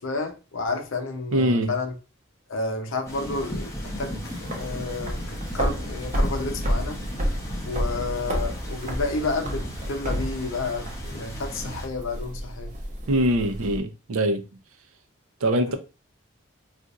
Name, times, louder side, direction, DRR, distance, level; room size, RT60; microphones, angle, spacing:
voice 1, 0.0-2.0 2.5-7.0 7.6-12.7 15.7-15.8, left 3 dB, 65° left, 0.6 m, -31 dB
voice 2, 1.3-1.7 13.1-14.4 15.4-15.7, right 1 dB, 75° right, 0.5 m, -23 dB
sound 1, 3.1-11.9, equal, 15° left, 0.7 m, -36 dB
sound 2, 3.9-13.8, equal, 35° right, 0.6 m, -31 dB
2.5 x 2.4 x 3.9 m
head